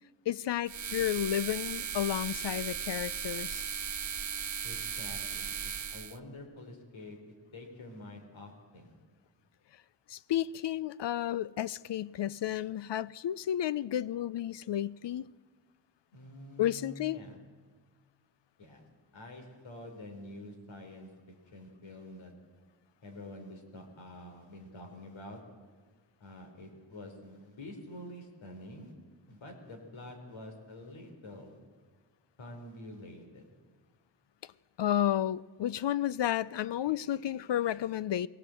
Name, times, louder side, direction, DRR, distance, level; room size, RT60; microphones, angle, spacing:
voice 1, 0.3-3.6 10.1-15.3 16.6-17.2 34.8-38.3, left 11 dB, 65° left, 0.6 m, -32 dB
sound 1, 0.7-6.2, right 7 dB, 40° right, 0.7 m, -37 dB
voice 2, 4.6-8.9 16.1-17.4 18.6-18.9 19.1-21.1 21.5-22.3 23.0-25.4 26.2-28.9 29.3-31.6 32.4-33.5, left 1 dB, 80° left, 4.0 m, -47 dB
22.5 x 17.5 x 7.7 m
wide cardioid pair, 95°, 46 cm